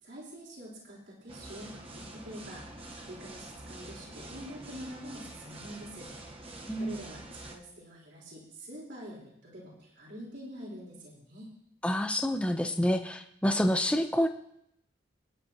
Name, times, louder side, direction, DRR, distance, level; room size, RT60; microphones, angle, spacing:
voice 1, 0.0-2.6 3.0-6.1 6.7-11.5, equal, 60° right, -4 dB, 4.2 m, -46 dB
sound 1, 1.3-7.6, right 1 dB, 30° right, 1.1 m, -46 dB
voice 2, 11.8-14.3, equal, 5° left, 5 dB, 0.7 m, -28 dB
25.0 x 10.5 x 2.9 m, 0.76 s
head